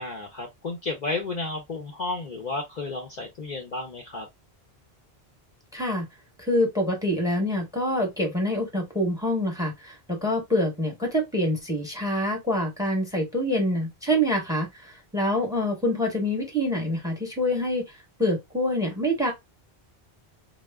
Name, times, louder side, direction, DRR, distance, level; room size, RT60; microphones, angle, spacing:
voice 1, 0.0-4.3, left 3 dB, 50° left, 0.6 m, -32 dB
voice 2, 5.7-6.1 6.4-17.8 18.2-19.3, equal, 5° right, 0.9 m, -26 dB
2.1 x 2.0 x 3.4 m
omnidirectional pair, 1.0 m